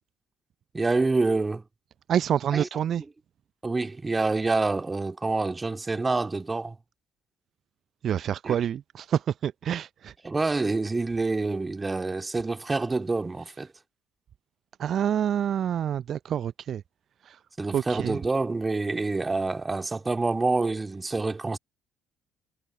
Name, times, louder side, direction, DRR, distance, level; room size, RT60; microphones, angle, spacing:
voice 1, 0.7-1.6 2.5-2.7 3.6-6.7 8.4-8.6 10.2-13.7 17.6-21.6, right 3 dB, 20° right, 3.3 m, -27 dB
voice 2, 2.1-3.0 8.0-10.1 14.8-16.8 17.2-17.4 17.7-18.2, right 9 dB, 45° right, 0.6 m, -27 dB
figure-of-eight pair, 50°, 0 cm